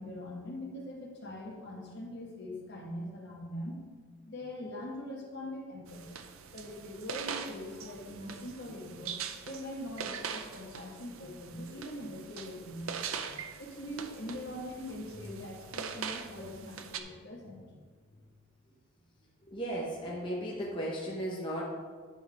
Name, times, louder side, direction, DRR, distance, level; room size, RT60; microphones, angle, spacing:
voice 1, 0.0-3.8 4.3-6.2 6.5-9.2 9.4-17.8, left 1 dB, 55° left, -2 dB, 1.5 m, -42 dB
sound 1, 5.9-17.0, right 7 dB, 80° right, 0.5 m, -42 dB
voice 2, 19.5-21.6, right 1 dB, 25° left, -4 dB, 0.9 m, -35 dB
9.4 x 5.6 x 3.5 m, 1.5 s
head